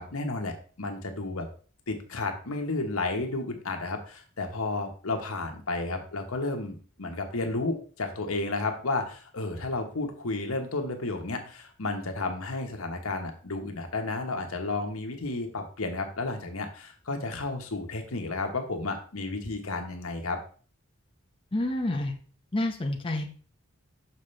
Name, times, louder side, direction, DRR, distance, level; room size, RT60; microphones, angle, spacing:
voice 1, 0.0-1.5 1.9-20.4, left 3 dB, 80° left, 4 dB, 1.2 m, -32 dB
voice 2, 21.5-22.2 22.5-23.3, left 1 dB, 25° left, 2 dB, 0.7 m, -28 dB
6.5 x 5.5 x 3.3 m, 0.41 s
head